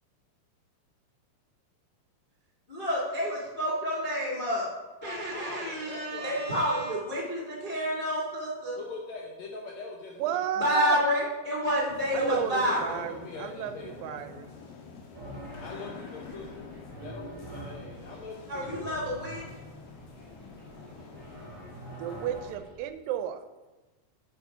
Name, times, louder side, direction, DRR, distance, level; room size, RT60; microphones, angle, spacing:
voice 1, 2.7-4.7 5.0-8.8 10.5-13.0 18.5-19.4, equal, 50° left, -5 dB, 0.6 m, -29 dB
voice 2, 5.0-6.4 8.8-10.4 12.3-14.3 15.6-16.7 17.0-18.9, left 3 dB, 80° left, 0 dB, 1.5 m, -42 dB
voice 3, 10.2-11.0 12.1-14.5 22.0-23.4, right 9 dB, 80° right, 10 dB, 2.2 m, -33 dB
sound 1, 11.9-22.6, left 4 dB, 65° left, 2.5 m, -47 dB
sound 2, 15.1-22.9, right 2 dB, 30° right, 1.6 m, -46 dB
7.0 x 6.4 x 5.0 m, 1.2 s
omnidirectional pair, 4.2 m